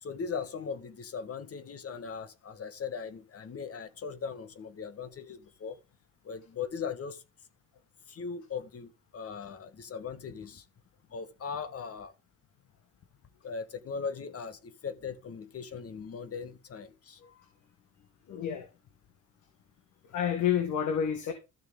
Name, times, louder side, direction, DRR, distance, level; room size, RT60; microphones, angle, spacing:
voice 1, 0.0-5.8 6.2-7.2 8.1-10.7 11.1-12.1 13.4-17.2, left 6 dB, 50° left, 1.6 m, -39 dB
voice 2, 17.2-17.5 18.3-18.7 20.0-21.3, left 9 dB, 80° left, 1.9 m, -30 dB
13.5 x 6.7 x 3.8 m
cardioid pair, 90°, 30 cm